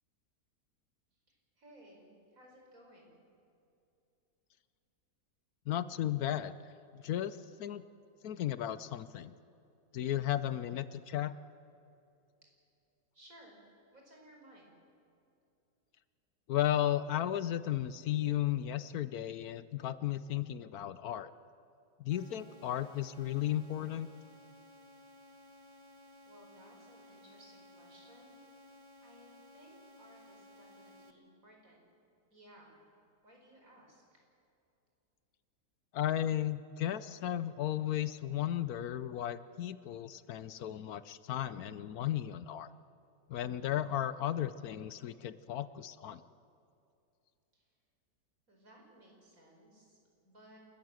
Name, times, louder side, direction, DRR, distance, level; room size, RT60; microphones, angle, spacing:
voice 1, 1.3-3.2 13.1-13.6 13.9-14.7 24.9-25.0 26.3-28.4 29.0-31.8 32.3-32.9 33.2-34.2 47.5-47.7 48.5-50.6, right 1 dB, 55° right, 0 dB, 5.4 m, -59 dB
voice 2, 5.7-6.5 7.0-7.8 8.2-9.3 9.9-11.3 16.5-21.3 22.0-24.1 35.9-42.7 43.3-46.2, left 11 dB, 70° left, 15 dB, 1.1 m, -34 dB
sound 1, 22.1-31.1, left 1 dB, 20° right, 1.2 m, -57 dB
28.5 x 14.5 x 7.7 m, 2.7 s
omnidirectional pair, 1.7 m